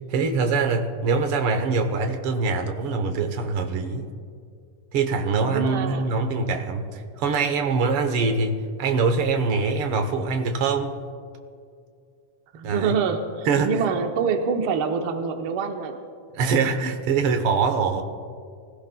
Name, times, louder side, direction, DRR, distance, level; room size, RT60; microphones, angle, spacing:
voice 1, 0.1-4.1 4.9-11.0 12.6-13.0 13.4-13.8 16.3-18.0, right 4 dB, 65° right, 6 dB, 1.4 m, -23 dB
voice 2, 5.5-6.2 12.5-16.0, right 6 dB, 85° right, 4 dB, 1.1 m, -26 dB
25.0 x 16.5 x 2.3 m, 2.3 s
omnidirectional pair, 3.6 m